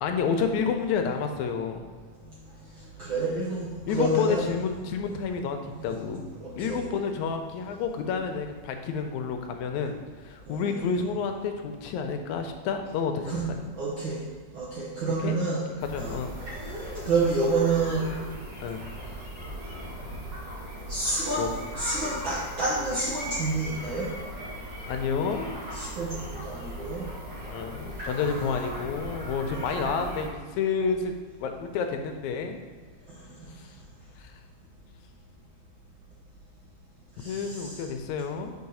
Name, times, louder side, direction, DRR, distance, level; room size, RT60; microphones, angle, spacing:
voice 1, 0.0-1.8 3.9-6.3 6.6-13.7 15.2-15.4 15.8-16.3 18.6-18.8 20.0-20.2 21.4-21.5 24.9-25.5 27.4-31.1 31.4-32.6 33.6-33.7 34.2-34.3 37.2-38.5, left 6 dB, 80° left, 5 dB, 1.9 m, -30 dB
voice 2, 3.0-4.5 5.6-5.8 6.4-6.9 10.5-10.6 13.3-13.4 13.7-14.2 14.5-15.6 15.9-16.2 17.0-18.2 20.9-21.5 21.8-24.1 25.7-27.0 33.4-33.5 37.2-37.8, right 3 dB, 70° right, -7 dB, 1.2 m, -28 dB
sound 1, 15.8-30.3, equal, 40° right, 2.4 m, -38 dB
4.7 x 4.6 x 5.4 m, 1.5 s
omnidirectional pair, 3.4 m